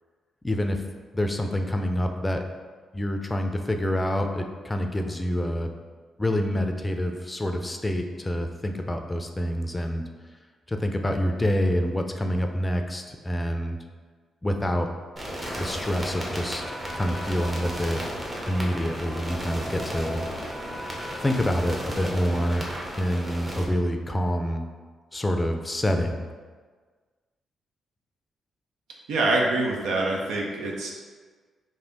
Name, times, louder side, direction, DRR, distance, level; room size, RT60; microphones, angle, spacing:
voice 1, 0.4-0.8 1.1-2.4 2.9-5.7 6.2-10.0 10.7-13.8 14.4-14.9 15.6-16.6 16.9-18.0 18.5-20.2 21.2-22.6 23.0-24.6 25.1-26.3, equal, 20° left, 5 dB, 0.5 m, -27 dB
sound 1, 15.2-23.7, equal, 25° right, 1.0 m, -34 dB
voice 2, 29.1-30.9, right 2 dB, 75° right, -1 dB, 0.6 m, -25 dB
3.3 x 2.6 x 3.9 m, 1.5 s
hypercardioid pair, 50°, 0 cm